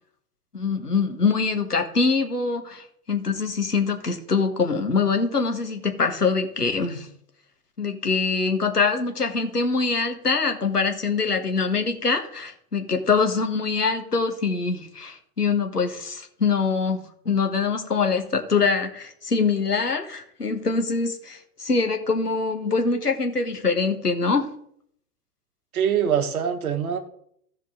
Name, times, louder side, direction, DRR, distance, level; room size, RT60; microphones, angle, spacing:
voice 1, 0.5-7.1 7.8-24.5, left 4 dB, 85° left, 1.5 m, -24 dB
voice 2, 25.7-27.0, right 8 dB, 70° right, 1.5 m, -23 dB
15.5 x 5.3 x 3.8 m
figure-of-eight pair, 90°, 45 cm